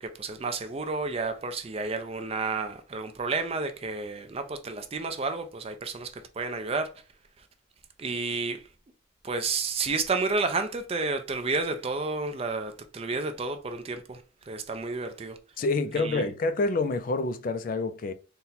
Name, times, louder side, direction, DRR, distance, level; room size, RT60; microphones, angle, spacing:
voice 1, 0.0-6.9 8.0-8.6 9.2-15.4 15.9-16.3, right 3 dB, 30° right, 0.4 m, -31 dB
voice 2, 15.6-18.1, left 3 dB, 45° left, 0.3 m, -27 dB
4.2 x 2.2 x 3.9 m
head